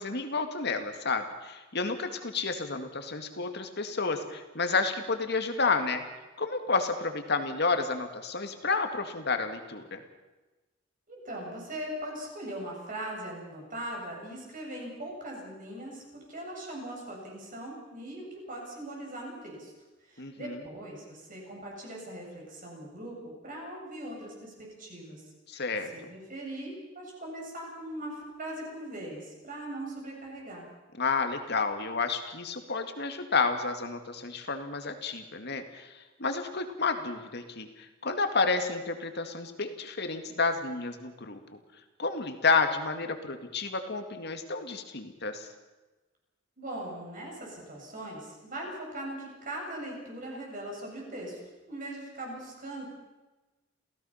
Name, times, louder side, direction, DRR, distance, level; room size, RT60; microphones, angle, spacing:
voice 1, 0.0-6.0 6.4-10.0 20.2-20.6 25.5-25.9 31.0-41.4 42.0-45.5, left 4 dB, 60° left, 7 dB, 2.2 m, -30 dB
voice 2, 11.1-19.7 20.0-25.2 25.5-25.6 25.9-30.7 46.6-51.4 51.7-52.9, right 1 dB, 45° right, -2 dB, 7.7 m, -40 dB
28.5 x 16.5 x 5.8 m, 1.1 s
head